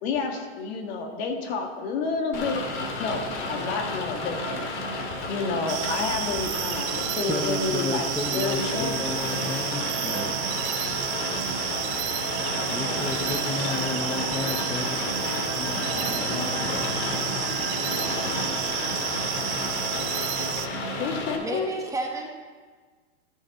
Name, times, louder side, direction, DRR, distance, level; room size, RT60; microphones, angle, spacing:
voice 1, 0.0-2.7 3.0-4.7 5.3-8.9 21.0-21.7, left 4 dB, 60° left, 4 dB, 1.6 m, -29 dB
Rain, 2.3-21.4, left 2 dB, 80° left, 2.0 m, -31 dB
sound 1, 5.7-20.7, right 12 dB, 35° right, 0.6 m, -31 dB
voice 2, 7.2-11.6 12.7-15.1 15.5-16.9, left 3 dB, 5° left, 1 dB, 0.4 m, -34 dB
voice 3, 21.4-22.3, right 2 dB, 10° right, 0 dB, 1.0 m, -31 dB
13.5 x 6.5 x 4.1 m, 1.5 s
hypercardioid pair, 135°, 34 cm